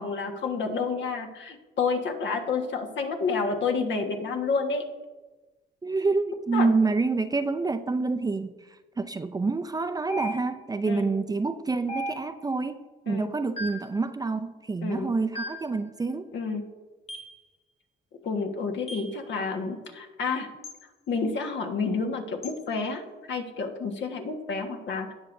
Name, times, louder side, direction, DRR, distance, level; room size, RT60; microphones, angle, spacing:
voice 1, 0.0-4.8 6.5-6.7 10.8-11.0 13.1-13.3 14.8-15.1 16.3-16.6 18.2-20.5 21.1-23.0 23.3-25.1, left 4 dB, 70° left, 4 dB, 1.5 m, -29 dB
voice 2, 5.8-8.5 9.0-12.8 13.1-16.3, right 3 dB, 20° right, 9 dB, 0.5 m, -27 dB
sound 1, 10.1-10.8 11.9-12.6 13.6-14.0 15.3-15.8 17.1-17.4 18.9-19.2 20.6-20.8 22.4-22.6, equal, 30° left, 1.1 m, -36 dB
18.0 x 6.2 x 2.6 m, 1.2 s
cardioid pair, 90°, 20 cm